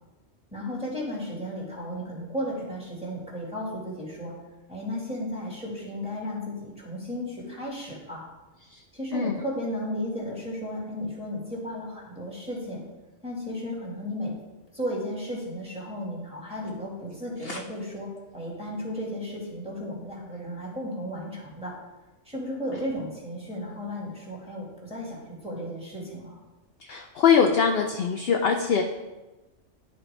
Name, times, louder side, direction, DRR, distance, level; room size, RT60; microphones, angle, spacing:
voice 1, 0.5-4.3 4.7-8.2 8.9-12.8 13.2-14.4 14.7-21.7 22.3-26.4, equal, 5° right, -4 dB, 1.8 m, -34 dB
voice 2, 26.9-28.8, left 6 dB, 60° left, 4 dB, 0.7 m, -22 dB
11.0 x 4.2 x 3.3 m, 1.1 s
omnidirectional pair, 1.3 m